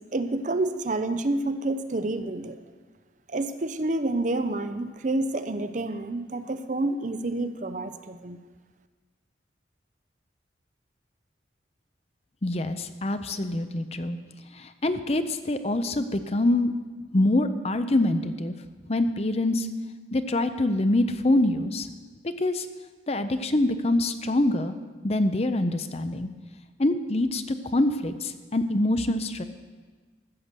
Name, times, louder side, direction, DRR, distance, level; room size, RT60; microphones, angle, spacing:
voice 1, 0.1-2.6 3.3-8.4, right 2 dB, 45° right, 10 dB, 0.6 m, -28 dB
voice 2, 12.4-14.2 14.6-16.7 17.1-18.6 18.9-19.7 20.1-21.9 22.2-22.7 23.1-24.7 25.0-26.3 26.8-29.4, left 1 dB, 35° left, 10 dB, 0.6 m, -25 dB
14.5 x 7.8 x 6.7 m, 1.4 s
head